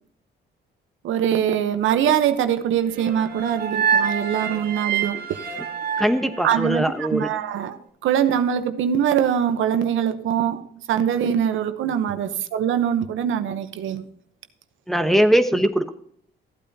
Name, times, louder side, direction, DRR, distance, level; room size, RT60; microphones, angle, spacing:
voice 1, 1.0-5.2 6.4-14.0, right 9 dB, 75° right, 0.9 m, -23 dB
sound 1, 3.0-7.2, right 7 dB, 50° right, 2.2 m, -27 dB
voice 2, 6.0-7.3 14.9-15.9, equal, ahead, 1.0 m, -20 dB
14.5 x 8.6 x 2.8 m
cardioid pair, 90°, 20 cm